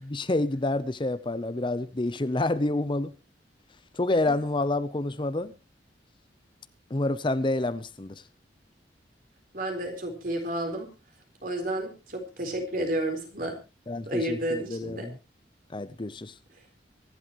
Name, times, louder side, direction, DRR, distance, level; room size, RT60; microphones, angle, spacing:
voice 1, 0.1-3.1 3.9-5.5 6.9-8.2 13.9-15.2 15.7-16.4, left 2 dB, 25° left, 0.6 m, -28 dB
voice 2, 9.5-10.9 11.4-13.6 14.1-15.1, right 1 dB, 50° right, 4.1 m, -31 dB
24.5 x 11.5 x 3.0 m
head